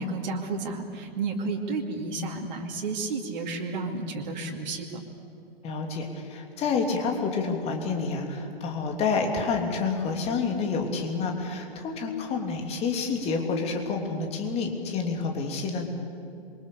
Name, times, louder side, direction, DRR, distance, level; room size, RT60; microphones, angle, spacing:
voice 1, 0.0-4.9, right 3 dB, 45° right, 1 dB, 2.9 m, -31 dB
voice 2, 5.6-15.8, left 4 dB, 20° left, 3 dB, 3.1 m, -28 dB
27.5 x 23.5 x 6.9 m, 2.7 s
figure-of-eight pair, 120°, 30 cm